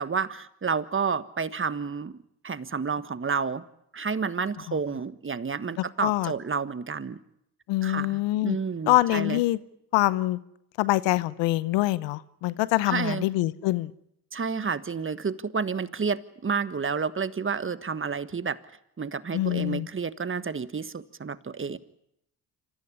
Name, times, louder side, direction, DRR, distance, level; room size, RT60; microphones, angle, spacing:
voice 1, 0.0-2.1 2.4-3.6 3.9-7.2 7.8-9.4 12.9-13.2 14.3-18.6 19.0-21.8, right 5 dB, 25° right, 14 dB, 1.4 m, -30 dB
voice 2, 6.0-6.3 7.7-8.6 8.9-9.6 9.9-10.4 10.8-13.9 19.3-19.9, left 17 dB, 70° left, 18 dB, 0.9 m, -24 dB
27.0 x 14.5 x 9.9 m, 0.78 s
hypercardioid pair, 55°, 45 cm